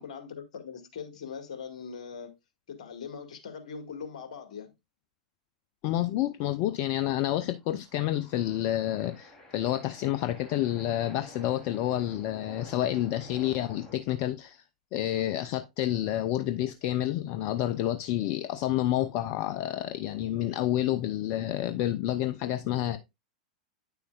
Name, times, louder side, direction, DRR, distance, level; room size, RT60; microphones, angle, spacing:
voice 1, 0.0-2.3 2.7-4.7, left 6 dB, 65° left, 1.8 m, -41 dB
voice 2, 5.8-14.6 14.9-23.0, left 13 dB, 45° left, 0.6 m, -29 dB
sound 1, 7.5-14.0, left 2 dB, 15° left, 3.1 m, -50 dB
9.5 x 6.9 x 2.3 m
hypercardioid pair, 100°, 4 cm